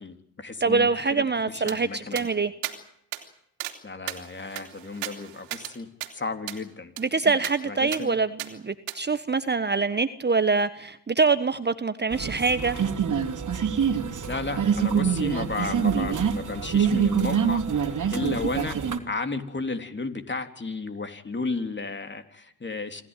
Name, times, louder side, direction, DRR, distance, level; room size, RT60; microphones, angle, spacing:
voice 1, 0.0-2.2 3.8-5.9 6.1-6.9 7.6-8.2 14.3-18.8 19.1-23.0, left 3 dB, 25° left, 7 dB, 3.4 m, -33 dB
voice 2, 0.6-2.5 7.0-12.8, right 4 dB, 20° right, 11 dB, 1.3 m, -24 dB
sound 1, 1.7-1.8 2.2-2.3 2.6-2.8 3.1-3.2 3.6-3.8 4.1-5.7 6.0-6.1 6.5-6.6 7.0-7.1 7.4-7.6 7.9-8.0 8.4-8.5 8.9-9.0, right 17 dB, 85° right, 3.1 m, -35 dB
sound 2, 12.1-19.0, right 7 dB, 40° right, 3.0 m, -25 dB
27.0 x 15.0 x 9.1 m, 0.76 s
supercardioid pair, 70°, 46 cm